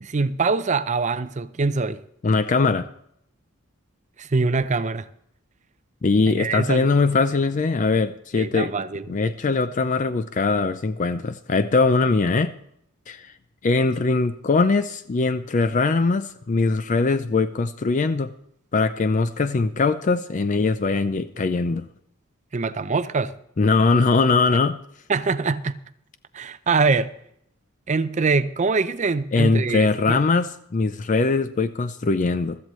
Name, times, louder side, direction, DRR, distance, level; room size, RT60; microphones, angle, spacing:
voice 1, 0.0-2.0 4.2-5.1 6.4-6.9 8.4-9.0 22.5-23.3 25.1-25.7 26.3-27.1 27.9-30.2, right 4 dB, 35° right, 0.5 m, -23 dB
voice 2, 2.2-2.9 6.0-8.7 9.1-12.5 13.1-13.3 13.6-18.3 18.7-21.8 23.6-24.8 29.3-32.6, left 3 dB, 35° left, 0.4 m, -21 dB
15.5 x 13.5 x 3.1 m
head